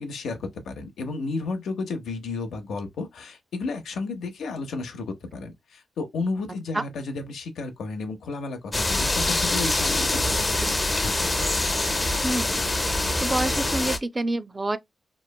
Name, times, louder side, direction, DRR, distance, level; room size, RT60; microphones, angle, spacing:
voice 1, 0.0-11.3, left 3 dB, 85° left, 0.6 m, -32 dB
sound 1, 8.7-14.0, left 2 dB, 25° left, 0.5 m, -24 dB
voice 2, 12.2-12.7 13.2-14.8, right 2 dB, 25° right, 0.3 m, -27 dB
3.0 x 2.1 x 2.2 m
cardioid pair, 70°, 0 cm